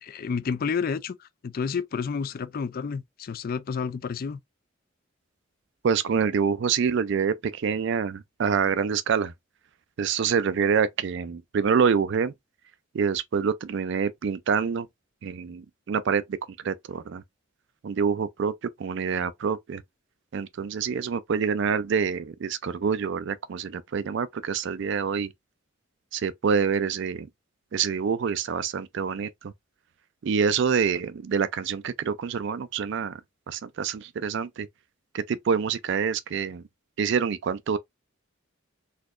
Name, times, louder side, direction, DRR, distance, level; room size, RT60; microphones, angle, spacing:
voice 1, 0.0-4.4, left 5 dB, 45° left, 0.3 m, -30 dB
voice 2, 5.8-9.3 10.0-12.3 12.9-14.9 15.2-16.4 16.6-17.2 17.8-18.5 18.8-19.8 20.3-25.3 26.1-27.3 27.7-29.5 30.2-33.2 33.5-34.7 35.1-36.6 37.0-37.8, right 6 dB, 60° right, 0.4 m, -26 dB
4.1 x 2.8 x 2.4 m
head